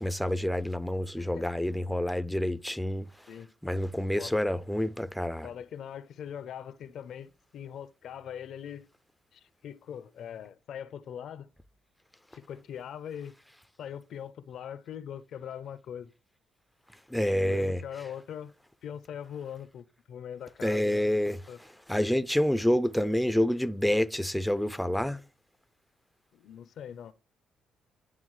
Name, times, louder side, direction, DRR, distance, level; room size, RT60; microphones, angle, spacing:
voice 1, 0.0-3.1 3.6-5.5 17.1-17.8 20.6-21.4 21.9-25.2, left 1 dB, 5° left, 0.4 m, -28 dB
voice 2, 1.2-1.5 3.3-3.5 4.2-4.4 5.4-8.9 9.3-11.5 12.3-13.3 13.8-16.1 17.4-18.5 18.8-21.2 21.5-21.6 26.3-27.1, left 9 dB, 70° left, 0.5 m, -41 dB
10.5 x 3.6 x 3.1 m
cardioid pair, 90°, 0 cm